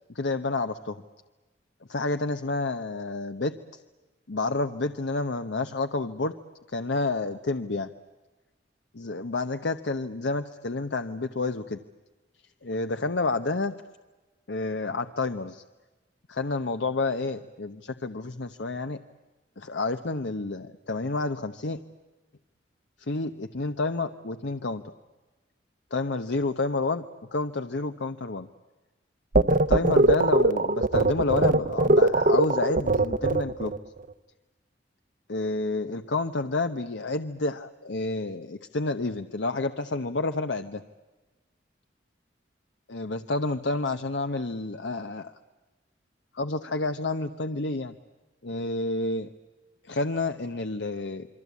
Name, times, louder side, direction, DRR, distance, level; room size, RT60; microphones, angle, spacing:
voice 1, 0.1-1.0 1.9-3.5 4.3-6.3 6.7-7.9 8.9-11.8 12.6-13.7 14.5-15.6 16.3-19.0 19.6-21.8 23.0-24.9 25.9-27.0 27.3-28.5 29.5-33.7 35.3-40.8 42.9-45.3 46.3-47.9 48.4-49.3 49.8-51.3, left 3 dB, 75° left, 8 dB, 0.9 m, -29 dB
sound 1, 29.3-33.8, right 2 dB, 45° right, 0.9 m, -21 dB
28.0 x 24.0 x 8.3 m, 1.2 s
head